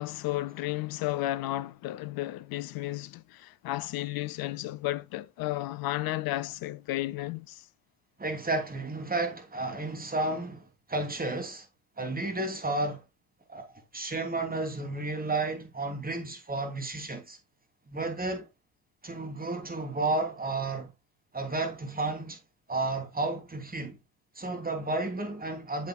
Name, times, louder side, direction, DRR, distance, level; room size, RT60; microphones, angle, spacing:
voice 1, 0.0-7.7, left 16 dB, 50° left, 0.7 m, -33 dB
voice 2, 8.2-11.7 12.0-13.0 13.5-17.4 17.9-18.5 19.0-20.9 21.3-22.4 22.7-24.0 24.3-25.9, right 2 dB, 20° right, 3.0 m, -32 dB
8.5 x 7.7 x 2.3 m
figure-of-eight pair, 60°, 48 cm